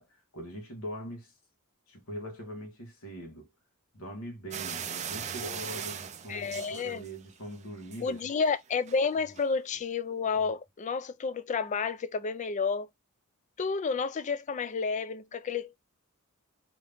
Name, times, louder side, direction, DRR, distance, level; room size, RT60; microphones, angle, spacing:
voice 1, 0.0-1.3 1.9-3.5 3.9-8.3 10.3-10.5, right 1 dB, 70° left, 1.3 m, -42 dB
sound 1, 4.5-7.4 7.7-8.2 8.9-9.0 9.4-9.5, right 8 dB, 30° right, 0.4 m, -39 dB
voice 2, 6.3-7.0 8.0-12.9 13.6-15.7, left 5 dB, 35° left, 0.3 m, -30 dB
2.8 x 2.6 x 3.4 m
head